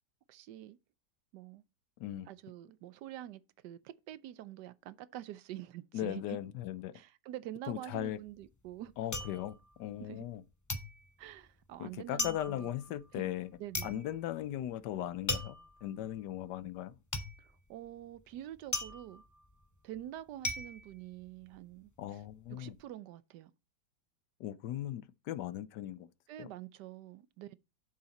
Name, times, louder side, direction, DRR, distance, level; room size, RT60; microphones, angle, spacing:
voice 1, 0.3-0.8 1.3-1.6 2.3-6.4 6.9-8.9 10.0-10.3 11.2-12.7 13.1-13.3 13.6-14.0 17.4-19.2 19.8-22.2 22.5-23.5 26.3-27.6, right 13 dB, 80° right, 1.2 m, -46 dB
voice 2, 5.9-6.9 7.7-8.2 9.0-10.4 11.8-13.5 13.8-17.0 22.0-22.8 24.4-26.1 26.4-26.5, left 12 dB, 85° left, 1.3 m, -38 dB
sound 1, 8.0-10.4 10.7-21.8 22.1-22.7, left 2 dB, 20° left, 0.5 m, -40 dB
7.6 x 7.1 x 4.1 m
omnidirectional pair, 1.8 m